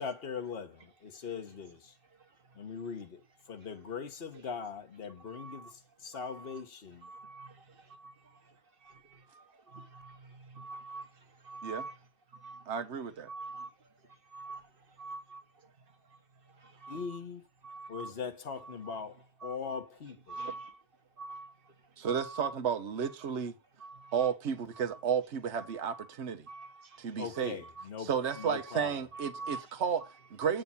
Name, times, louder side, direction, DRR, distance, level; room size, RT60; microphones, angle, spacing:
voice 1, 0.0-1.8 2.6-3.2 3.5-5.7 6.0-7.1 16.9-17.4 17.9-19.1 19.4-20.3 27.2-28.1 28.4-28.9, left 6 dB, 60° left, 1.4 m, -40 dB
voice 2, 1.2-1.6 2.2-2.6 3.6-3.9 4.3-4.5 5.1-5.8 6.1-12.0 12.3-12.8 13.3-17.2 17.6-18.2 18.5-20.8 21.2-22.6 23.0-23.3 23.8-24.3 24.7-25.0 25.6-26.1 26.5-27.9 28.2-28.7 29.1-29.7 30.0-30.1 30.4-30.5, right 3 dB, 55° right, 1.4 m, -47 dB
voice 3, 12.7-13.3 22.0-23.5 24.1-26.4 27.0-27.6 28.0-30.0 30.3-30.6, right 7 dB, 75° right, 1.2 m, -32 dB
8.5 x 5.3 x 5.7 m
omnidirectional pair, 1.2 m